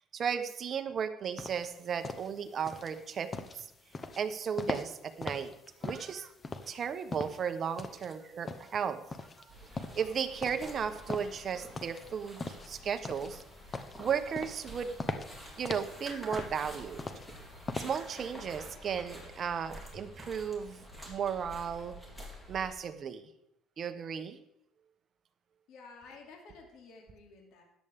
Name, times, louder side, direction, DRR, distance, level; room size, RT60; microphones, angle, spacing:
voice 1, 0.1-3.3 3.5-3.7 4.2-5.5 5.8-6.3 6.7-9.0 9.4-9.5 9.9-12.4 12.7-13.4 14.0-14.9 15.6-17.0 17.7-22.0 22.5-23.3 23.8-24.4, right 7 dB, 40° right, 9 dB, 1.0 m, -35 dB
sound 1, 1.4-18.3, left 3 dB, 25° left, 0.9 m, -41 dB
sound 2, 9.5-22.7, equal, 10° left, 3.5 m, -49 dB
voice 2, 25.7-27.6, left 4 dB, 70° left, 0 dB, 2.7 m, -52 dB
13.5 x 10.0 x 3.6 m, 0.81 s
cardioid pair, 125°, 0 cm